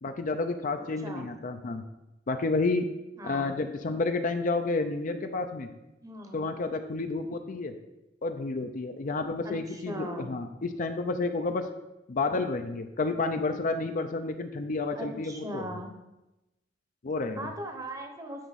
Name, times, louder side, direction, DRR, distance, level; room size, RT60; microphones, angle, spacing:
voice 1, 0.0-1.8 2.3-2.8 3.2-5.7 6.3-7.7 8.2-11.6 12.1-15.6 17.0-17.5, left 3 dB, 45° left, 7 dB, 0.5 m, -30 dB
voice 2, 3.2-3.5 6.0-6.5 9.4-10.3 14.9-15.9 17.4-18.5, right 1 dB, 20° right, 3 dB, 0.8 m, -39 dB
9.2 x 4.6 x 4.1 m, 0.97 s
head